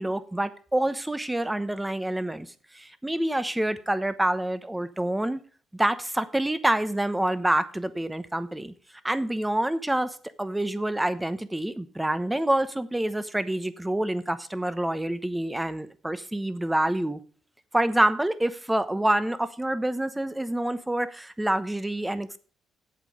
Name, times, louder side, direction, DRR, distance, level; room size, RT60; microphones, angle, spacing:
voice 1, 0.0-2.5 2.7-5.4 5.7-8.7 9.0-17.2 17.7-22.4, right 1 dB, 10° right, 13 dB, 0.9 m, -27 dB
8.5 x 7.5 x 6.5 m, 0.43 s
cardioid pair, 90°, 0 cm